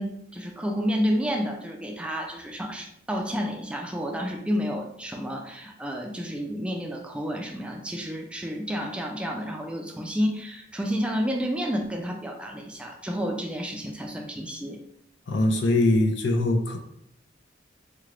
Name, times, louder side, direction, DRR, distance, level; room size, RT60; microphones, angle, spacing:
voice 1, 0.0-14.8, equal, 5° right, 1 dB, 0.3 m, -30 dB
voice 2, 15.3-16.8, left 2 dB, 75° left, 3 dB, 0.6 m, -22 dB
3.6 x 2.4 x 3.2 m, 0.74 s
head